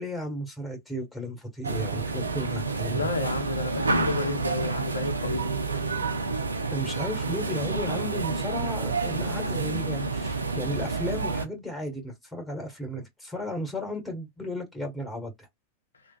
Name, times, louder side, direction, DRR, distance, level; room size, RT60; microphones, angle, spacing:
voice 1, 0.0-3.1 6.7-15.5, equal, 5° left, 1.5 m, -34 dB
sound 1, 1.6-11.5, right 3 dB, 75° right, 0.5 m, -29 dB
voice 2, 2.9-5.5, left 3 dB, 70° left, 0.6 m, -31 dB
3.3 x 2.2 x 2.3 m
figure-of-eight pair, 90°, 0 cm